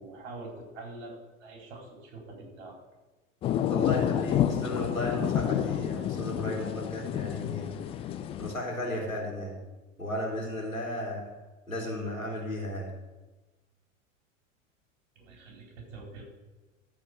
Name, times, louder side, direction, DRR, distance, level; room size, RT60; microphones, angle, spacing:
voice 1, 0.0-2.8 15.2-16.2, right 2 dB, 55° right, -1 dB, 4.2 m, -45 dB
sound 1, 3.4-8.5, left 10 dB, 15° left, 0.3 m, -29 dB
voice 2, 3.7-7.8 8.4-9.6 10.0-11.3 11.7-12.9, left 1 dB, 90° left, -2 dB, 3.2 m, -34 dB
13.0 x 4.9 x 6.7 m, 1.2 s
figure-of-eight pair, 85°, 40 cm